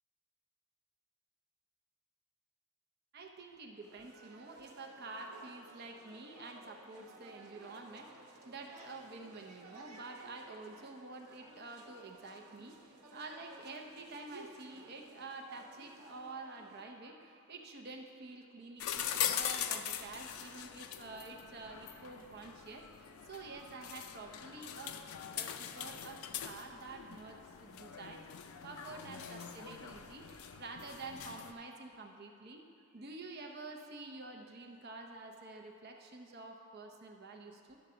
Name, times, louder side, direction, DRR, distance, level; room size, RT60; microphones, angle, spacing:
voice 1, 3.1-25.0 25.3-28.3 28.6-37.8, right 3 dB, 45° right, 2 dB, 0.6 m, -49 dB
sound 1, 3.8-16.8, right 2 dB, 80° right, 1.0 m, -56 dB
sound 2, 18.8-31.5, left 9 dB, 75° left, 0.4 m, -42 dB
11.5 x 4.0 x 6.7 m, 2.5 s
head